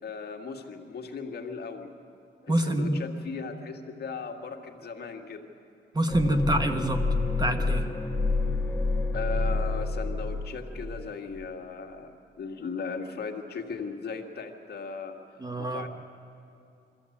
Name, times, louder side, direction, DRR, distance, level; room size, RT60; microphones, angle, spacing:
voice 1, 0.0-1.9 2.4-5.5 9.1-15.2 15.6-15.9, left 5 dB, 55° left, 3 dB, 1.9 m, -37 dB
voice 2, 2.5-2.9 5.9-7.0 7.4-7.9 15.4-15.9, right 1 dB, 20° right, 6 dB, 1.3 m, -26 dB
sound 1, 6.1-11.1 11.3-11.4, left 3 dB, 10° left, 1.3 m, -28 dB
23.5 x 14.0 x 8.6 m, 2.7 s
cardioid pair, 100°, 19 cm